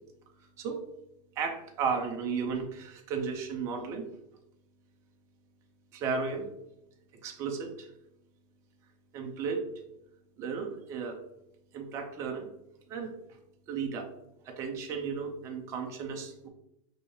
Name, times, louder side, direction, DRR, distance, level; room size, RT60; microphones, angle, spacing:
voice 1, 1.4-4.1 5.9-6.5 7.2-7.9 9.1-9.6 10.4-11.2 11.7-12.5 12.9-13.1 13.7-14.1 14.5-16.5, right 5 dB, 15° right, 2 dB, 0.4 m, -34 dB
6.0 x 2.7 x 2.8 m, 0.81 s
supercardioid pair, 175°, 18 cm